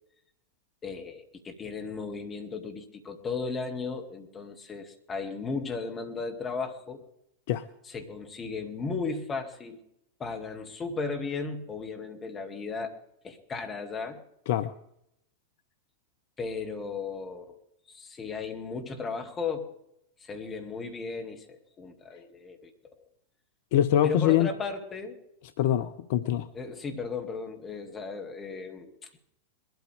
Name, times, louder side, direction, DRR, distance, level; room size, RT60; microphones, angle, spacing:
voice 1, 0.8-7.0 7.9-9.8 10.2-12.9 13.2-14.2 16.4-17.6 17.9-19.7 20.2-22.9 24.0-25.2 26.5-29.1, left 4 dB, 20° left, 4 dB, 2.1 m, -35 dB
voice 2, 23.7-24.5 25.6-26.5, left 11 dB, 50° left, 11 dB, 0.6 m, -24 dB
21.5 x 13.0 x 3.4 m, 0.77 s
figure-of-eight pair, 90°, 0 cm